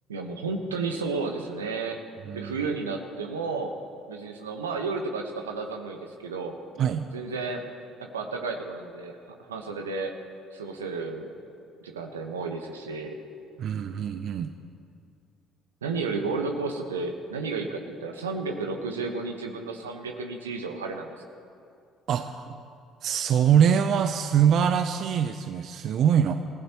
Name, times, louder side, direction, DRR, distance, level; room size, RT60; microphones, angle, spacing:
voice 1, 0.1-2.0 2.3-3.8 4.1-6.6 7.1-7.7 8.0-9.2 9.5-10.1 10.5-11.3 11.8-13.2 15.8-21.3, right 4 dB, 90° right, 3 dB, 1.2 m, -32 dB
voice 2, 13.6-14.5 22.1-22.6 23.0-26.3, right 8 dB, 55° right, 9 dB, 0.6 m, -23 dB
28.0 x 15.5 x 3.0 m, 2.4 s
hypercardioid pair, 55°, 0 cm